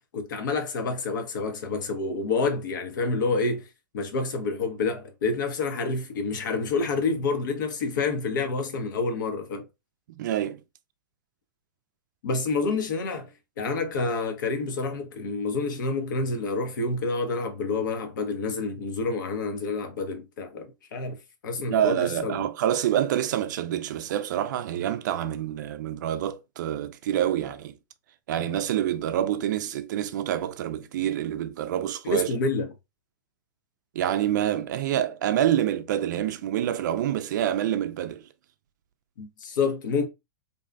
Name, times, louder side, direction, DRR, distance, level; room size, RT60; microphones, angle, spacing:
voice 1, 0.1-3.7 3.9-9.7 12.2-13.3 13.6-21.2 21.4-22.5 32.0-32.7 39.2-40.1, left 3 dB, 65° left, 0.7 m, -28 dB
voice 2, 10.1-10.6 21.7-27.7 28.3-32.3 34.0-38.2, right 11 dB, 60° right, 0.4 m, -27 dB
2.6 x 2.3 x 2.2 m
hypercardioid pair, 100°, 11 cm